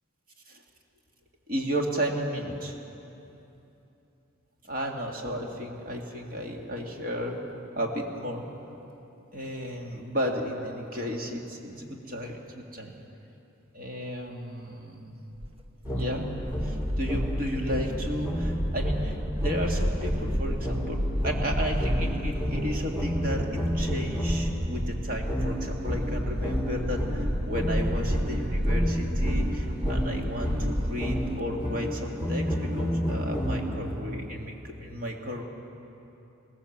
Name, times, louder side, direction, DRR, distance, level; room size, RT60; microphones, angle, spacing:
voice 1, 1.5-2.8 4.6-7.4 7.8-8.4 9.3-12.9 13.7-15.2 15.9-35.4, equal, 45° right, 1 dB, 2.2 m, -33 dB
sound 1, 15.4-31.4, equal, 30° right, 0.9 m, -31 dB
sound 2, 15.9-24.6 25.3-33.9, equal, 10° right, 5.4 m, -31 dB
21.0 x 18.0 x 7.3 m, 2.9 s
head